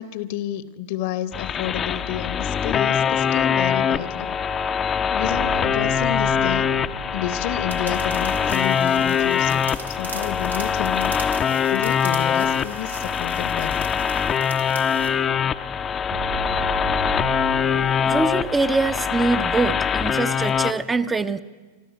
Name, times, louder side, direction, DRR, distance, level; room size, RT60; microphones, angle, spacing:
voice 1, 0.0-4.4 5.1-6.7 7.1-9.6 9.9-13.9, left 11 dB, 50° left, 16 dB, 1.0 m, -30 dB
sound 1, 1.3-20.7, left 7 dB, 25° left, 0.6 m, -23 dB
sound 2, 5.2-9.5 16.1-19.9, right 13 dB, 50° right, 2.1 m, -36 dB
sound 3, 7.7-15.1, right 4 dB, 80° right, 1.5 m, -40 dB
voice 2, 17.7-21.4, right 3 dB, 15° right, 10 dB, 0.6 m, -24 dB
25.5 x 13.0 x 8.1 m, 1.3 s
figure-of-eight pair, 90°, 0 cm